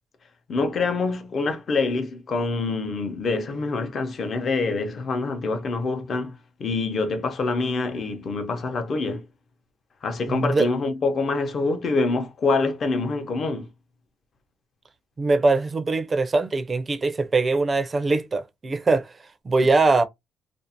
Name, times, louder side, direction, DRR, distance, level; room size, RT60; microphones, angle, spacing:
voice 1, 0.5-9.2 10.0-13.7 19.6-19.7, left 3 dB, 50° left, 0.7 m, -26 dB
voice 2, 10.3-10.7 15.2-19.1 19.5-20.0, right 3 dB, 35° right, 0.4 m, -22 dB
2.5 x 2.0 x 2.7 m
cardioid pair, 90°, 0 cm